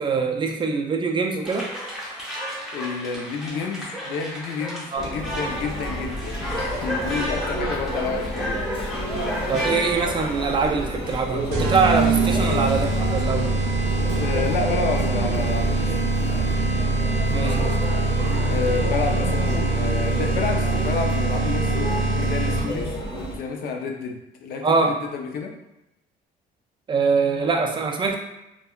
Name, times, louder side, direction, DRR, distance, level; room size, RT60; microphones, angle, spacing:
voice 1, 0.0-1.7 4.9-5.1 9.5-13.6 17.3-17.7 24.6-25.0 26.9-28.2, right 4 dB, 30° right, 2 dB, 0.4 m, -23 dB
sound 1, 1.4-10.5, equal, 5° right, 0.7 m, -32 dB
voice 2, 2.7-8.6 12.1-12.3 14.1-16.2 17.4-17.7 18.5-25.5, left 5 dB, 65° left, 2 dB, 0.5 m, -30 dB
Conversation / Chatter / Crowd, 4.9-23.4, equal, 30° left, 0.9 m, -31 dB
sound 2, 11.5-22.9, right 3 dB, 70° right, 0.6 m, -23 dB
3.3 x 2.2 x 2.2 m, 0.90 s
cardioid pair, 110°, 17 cm